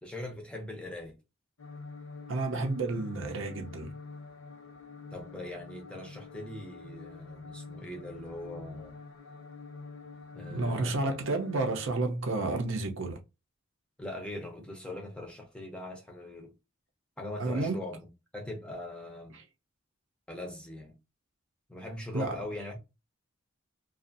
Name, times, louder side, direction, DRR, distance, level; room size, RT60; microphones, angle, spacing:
voice 1, 0.0-1.2 5.1-9.0 10.3-11.1 14.0-16.5 17.2-19.4 20.3-20.9 21.7-22.8, left 1 dB, 5° left, 0.6 m, -41 dB
sound 1, 1.6-11.9, left 4 dB, 80° left, 0.9 m, -46 dB
voice 2, 2.3-3.9 10.5-13.2 17.4-17.8 22.1-22.4, right 2 dB, 65° right, 0.6 m, -31 dB
2.6 x 2.4 x 2.5 m
head